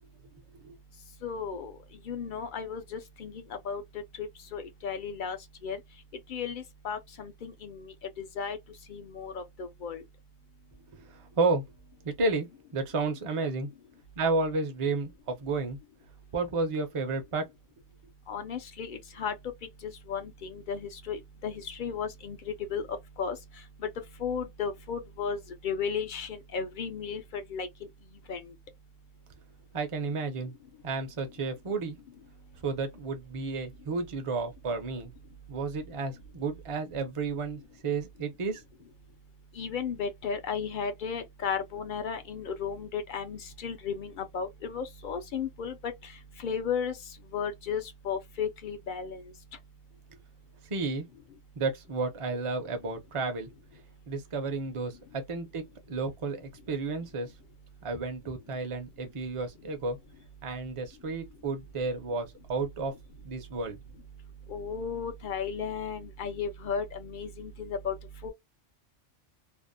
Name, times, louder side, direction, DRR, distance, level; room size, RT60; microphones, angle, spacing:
voice 1, 1.2-1.7 2.1-3.8 4.2-5.4 5.6-5.8 6.3-8.6 8.9-10.0 18.3-19.3 19.8-23.4 24.2-27.7 28.3-28.5 39.6-46.1 46.4-47.0 47.3-49.2 64.5-67.9 68.2-68.3, left 6 dB, 60° left, 0.5 m, -34 dB
voice 2, 11.0-11.6 12.0-12.5 12.7-13.7 14.2-15.8 16.3-17.5 29.7-30.5 30.8-32.0 32.6-35.1 35.5-38.6 50.7-51.0 51.6-53.5 54.1-55.6 55.9-57.3 57.8-60.0 60.4-62.9 63.2-63.8, right 3 dB, 40° right, 0.5 m, -32 dB
2.6 x 2.0 x 2.5 m
omnidirectional pair, 1.3 m